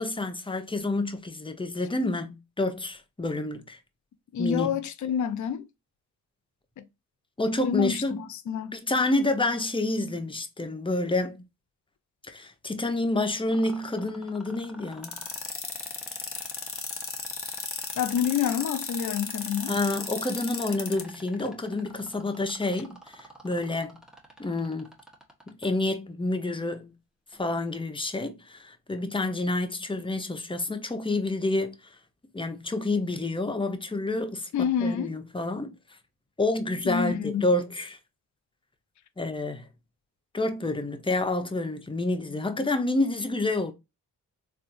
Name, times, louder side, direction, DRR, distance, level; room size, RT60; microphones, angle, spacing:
voice 1, 0.0-3.8 4.4-4.8 7.4-8.3 8.7-11.5 12.3-15.2 19.7-24.0 24.4-24.9 25.6-26.9 27.4-31.8 32.3-34.5 34.8-35.8 36.4-38.0 39.2-39.7 40.3-43.7, left 2 dB, 15° left, 0.8 m, -28 dB
voice 2, 4.3-5.6 6.8-6.9 7.6-8.0 8.3-8.8 18.0-19.7 34.5-35.1 36.8-37.5, left 8 dB, 55° left, 0.6 m, -28 dB
sound 1, 13.5-25.7 27.3-27.4, right 1 dB, ahead, 1.1 m, -47 dB
sound 2, 15.0-21.0, left 5 dB, 35° left, 1.0 m, -34 dB
3.5 x 2.6 x 2.5 m
cardioid pair, 55°, 36 cm